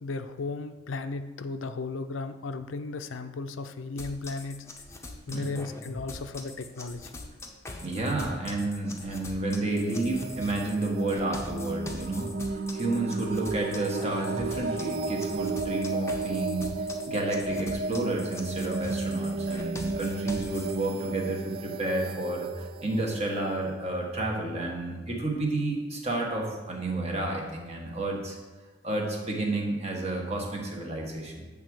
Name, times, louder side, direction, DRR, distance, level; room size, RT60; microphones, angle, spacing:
voice 1, 0.0-4.6 5.3-7.1, left 3 dB, 80° left, 9 dB, 0.5 m, -35 dB
sound 1, 4.0-20.8, left 2 dB, 15° left, 0.7 m, -43 dB
voice 2, 5.3-5.6 7.8-16.7 17.1-28.4 28.8-31.5, right 2 dB, 35° right, 0 dB, 1.3 m, -31 dB
sound 2, 9.7-24.4, right 3 dB, 55° right, 0.4 m, -33 dB
8.3 x 3.6 x 6.2 m, 1.3 s
head